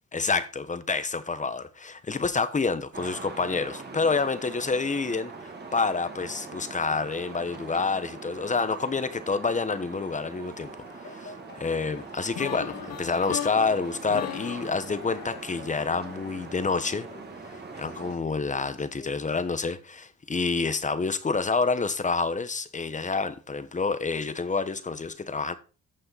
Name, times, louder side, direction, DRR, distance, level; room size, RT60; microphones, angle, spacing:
voice 1, 0.1-17.1 17.7-25.5, left 4 dB, 25° left, 1.1 m, -28 dB
sound 1, 2.9-18.2, right 4 dB, 35° right, 2.2 m, -42 dB
Speech / Cough, 10.6-12.9 13.2-14.0 14.9-16.1 17.1-19.4, left 4 dB, 40° left, 2.7 m, -48 dB
sound 2, 12.3-16.3, left 12 dB, 60° left, 0.6 m, -37 dB
14.5 x 5.6 x 4.1 m
cardioid pair, 90°, 30 cm